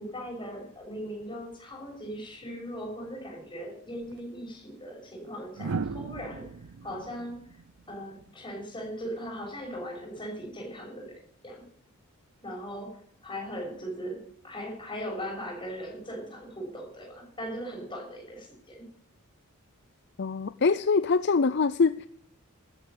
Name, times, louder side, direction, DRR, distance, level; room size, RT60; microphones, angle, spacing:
voice 1, 0.0-6.5 6.8-7.4 7.9-11.6 12.4-18.8, equal, 20° left, 0 dB, 6.5 m, -39 dB
sound 1, 4.0-4.2 5.5-8.6 10.2-10.5, right 4 dB, 85° right, 0.6 m, -37 dB
voice 2, 20.2-22.1, left 4 dB, 50° left, 14 dB, 0.5 m, -24 dB
13.0 x 10.5 x 8.9 m, 0.65 s
head